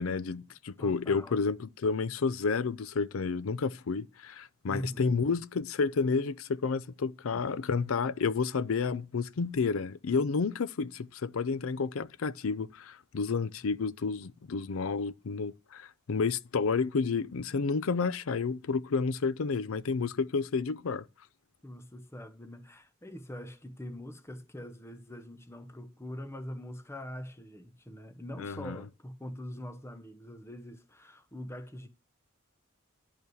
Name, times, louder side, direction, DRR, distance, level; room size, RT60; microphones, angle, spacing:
voice 1, 0.0-21.0 28.4-28.8, left 4 dB, 80° left, 0.5 m, -30 dB
voice 2, 0.8-1.4 4.7-5.2 7.3-7.4 21.6-31.9, equal, 15° left, 0.9 m, -43 dB
11.0 x 5.5 x 6.3 m
head